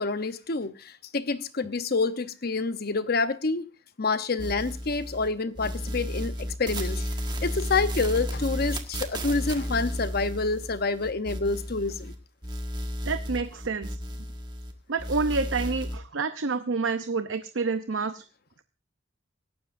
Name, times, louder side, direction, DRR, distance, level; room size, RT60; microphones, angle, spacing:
voice 1, 0.0-3.6 4.0-7.1 7.4-12.1, left 3 dB, 55° left, 0.9 m, -28 dB
sound 1, 4.4-5.3 5.5-12.2 12.4-14.7 15.0-16.0, equal, 25° right, 1.6 m, -33 dB
voice 2, 13.1-14.0 14.9-18.2, right 4 dB, 85° right, 0.7 m, -28 dB
25.0 x 12.5 x 2.6 m
head